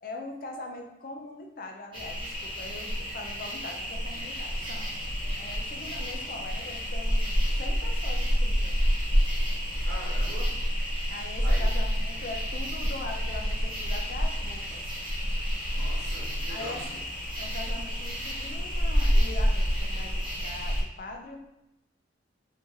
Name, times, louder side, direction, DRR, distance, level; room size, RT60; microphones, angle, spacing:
voice 1, 0.0-8.8 11.1-14.9 16.5-17.0 17.3-21.4, left 2 dB, 50° left, 3 dB, 0.5 m, -42 dB
sound 1, 1.9-20.8, equal, 25° right, 0.9 m, -28 dB
voice 2, 9.8-10.5 11.4-11.7 15.6-16.8, right 1 dB, 75° right, -8 dB, 1.2 m, -41 dB
3.0 x 2.8 x 3.6 m, 0.90 s
head